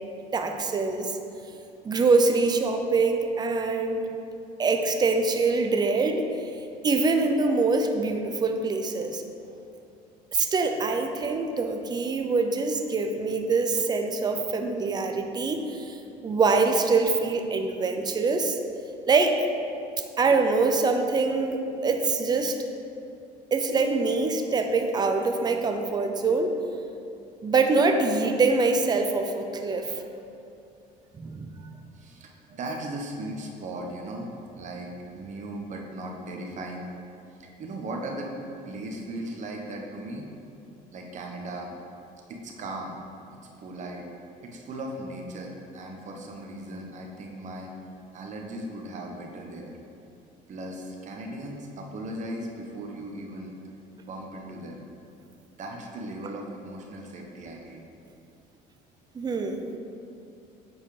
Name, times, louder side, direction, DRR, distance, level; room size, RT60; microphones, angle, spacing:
voice 1, 0.3-1.2 1.8-4.0 4.6-6.3 6.8-9.2 10.3-16.0 16.2-18.6 19.1-19.5 20.2-22.6 23.5-26.6 27.4-30.0 31.2-31.5 59.1-59.7, right 3 dB, 25° right, 5 dB, 0.6 m, -24 dB
voice 2, 31.9-36.9 37.4-38.3 38.6-40.3 40.9-41.7 42.3-43.0 43.6-44.1 44.4-47.7 48.1-49.8 50.5-53.5 54.0-54.8 55.6-57.8, right 1 dB, 45° right, 1 dB, 1.2 m, -37 dB
8.5 x 4.6 x 5.0 m, 2.6 s
cardioid pair, 115°, 17 cm